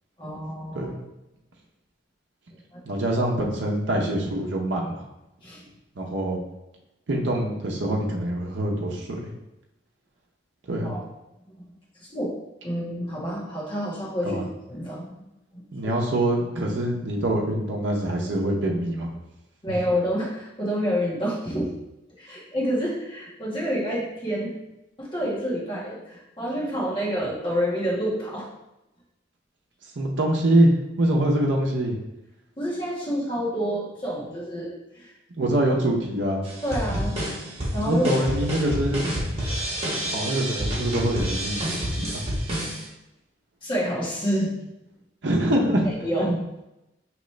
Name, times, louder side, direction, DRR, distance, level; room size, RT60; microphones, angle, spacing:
voice 1, 0.2-0.9 2.7-2.8 5.4-5.6 10.8-11.0 12.0-12.3 12.6-14.4 14.7-15.1 15.5-15.9 19.6-21.7 22.2-24.5 25.0-28.4 32.6-35.1 36.6-37.3 37.7-38.4 43.6-44.6 45.8-46.4, equal, 25° left, -6 dB, 1.3 m, -28 dB
voice 2, 2.8-5.0 6.0-6.4 7.1-9.1 10.7-11.0 14.2-14.4 15.7-19.1 30.0-31.9 35.4-36.4 37.9-39.1 40.0-42.2 45.2-45.9, right 1 dB, 70° right, -1 dB, 0.7 m, -24 dB
sound 1, 36.4-42.8, equal, 30° right, 1.3 m, -28 dB
5.1 x 3.0 x 3.2 m, 0.92 s
head